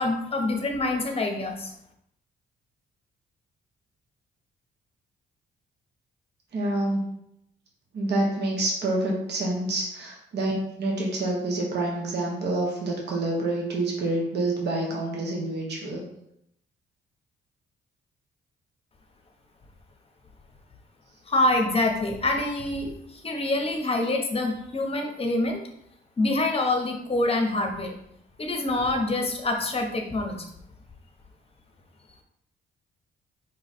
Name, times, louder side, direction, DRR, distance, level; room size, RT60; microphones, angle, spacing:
voice 1, 0.0-1.7 21.3-25.6 26.2-27.9 28.4-30.4, left 2 dB, 30° left, 3 dB, 0.9 m, -26 dB
voice 2, 6.5-7.0 7.9-16.0, right 2 dB, 60° right, -2 dB, 1.2 m, -27 dB
5.0 x 2.4 x 4.2 m, 0.75 s
cardioid pair, 90°, 20 cm